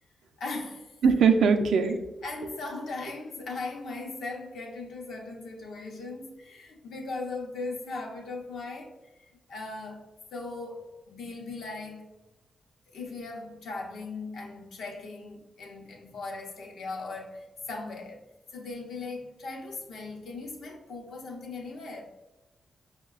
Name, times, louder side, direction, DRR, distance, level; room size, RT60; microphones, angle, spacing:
voice 1, 0.4-1.0 2.2-9.1 9.5-12.1 12.9-18.2 18.5-22.1, left 3 dB, 80° left, 0.6 m, -38 dB
voice 2, 1.0-2.1, right 5 dB, 80° right, 0.3 m, -21 dB
5.6 x 2.1 x 2.3 m
supercardioid pair, 40°, 0 cm